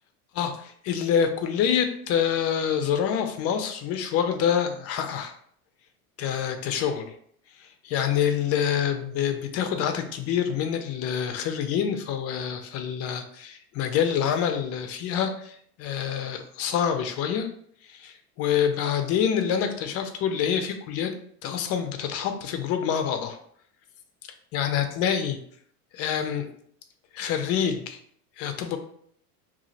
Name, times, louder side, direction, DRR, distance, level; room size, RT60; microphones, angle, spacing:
voice 1, 0.3-5.3 6.2-7.2 7.6-17.5 17.9-21.1 21.4-23.4 24.5-25.4 25.9-26.5 27.1-28.0 28.4-28.8, left 8 dB, 35° left, 7 dB, 0.4 m, -26 dB
2.5 x 2.0 x 3.8 m, 0.63 s
hypercardioid pair, 90°, 46 cm